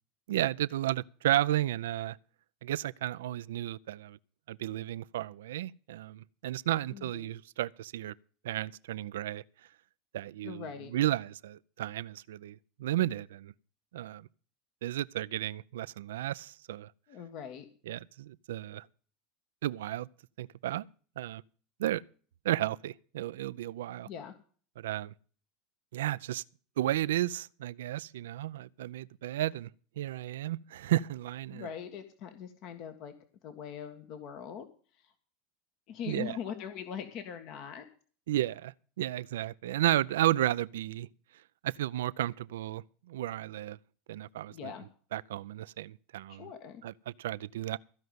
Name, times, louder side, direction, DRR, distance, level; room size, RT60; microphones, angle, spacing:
voice 1, 0.3-2.2 2.6-4.2 4.5-8.1 8.4-9.4 10.1-13.5 13.9-14.3 14.8-16.9 17.9-18.9 19.6-20.1 20.4-20.9 21.2-21.4 21.8-22.0 22.4-24.1 24.8-25.1 25.9-26.4 26.8-29.7 30.0-31.7 36.1-36.4 38.3-41.1 41.6-43.8 44.1-44.7 45.1-46.5 46.8-47.8, right 14 dB, 80° right, 0.5 m, -33 dB
voice 2, 6.9-7.2 10.4-10.9 17.1-17.7 24.0-24.3 31.5-33.1 33.4-34.7 35.0-35.1 35.9-37.9 44.5-44.9 46.3-46.8, left 8 dB, 55° left, 1.7 m, -41 dB
15.0 x 5.2 x 9.4 m
hypercardioid pair, 100°, 0 cm